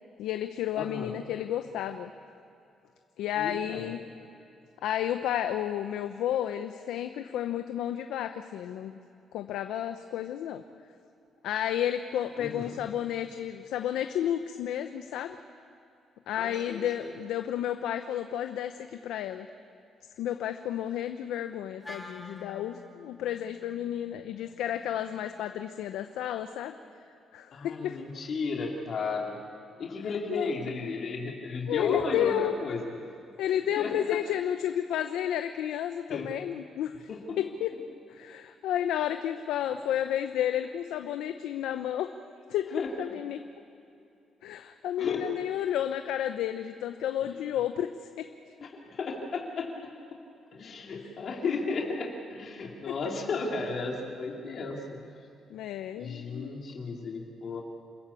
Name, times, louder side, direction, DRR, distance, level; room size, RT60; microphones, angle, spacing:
voice 1, 0.2-2.1 3.2-4.0 4.8-9.0 9.3-10.6 11.4-15.4 16.3-19.5 20.2-26.7 27.3-28.0 30.3-30.5 31.7-32.5 33.4-37.1 37.4-37.7 38.1-42.1 42.5-43.4 44.4-47.9 48.2-48.3 51.4-51.5 55.5-56.5, left 11 dB, 85° left, 8 dB, 0.7 m, -31 dB
voice 2, 0.7-1.1 3.4-3.9 12.4-12.7 16.3-17.1 27.5-29.4 29.8-32.9 33.8-34.2 36.1-36.3 37.1-37.4 42.8-42.9 45.0-45.2 48.6-49.7 50.5-55.0 56.0-57.6, left 4 dB, 55° left, -1 dB, 2.9 m, -34 dB
Wind instrument woodwind instrument, 21.8-26.1, left 3 dB, 20° left, 2.4 m, -50 dB
27.5 x 14.5 x 8.5 m, 2.7 s
cardioid pair, 90°, 0 cm